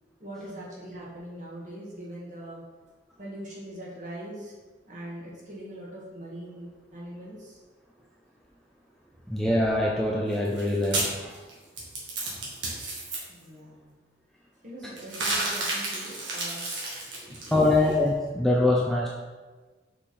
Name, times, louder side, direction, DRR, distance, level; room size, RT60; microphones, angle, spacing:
voice 1, 0.2-2.6 3.2-4.5 4.8-7.6 9.1-9.2 13.3-13.9 14.6-17.8, right 1 dB, 45° right, -5 dB, 1.8 m, -42 dB
voice 2, 9.3-11.4 17.5-19.1, left 2 dB, ahead, -3 dB, 0.5 m, -24 dB
sound 1, 10.3-13.2 15.0-17.9, right 2 dB, 85° right, 1.8 m, -31 dB
5.5 x 4.6 x 4.3 m, 1.3 s
head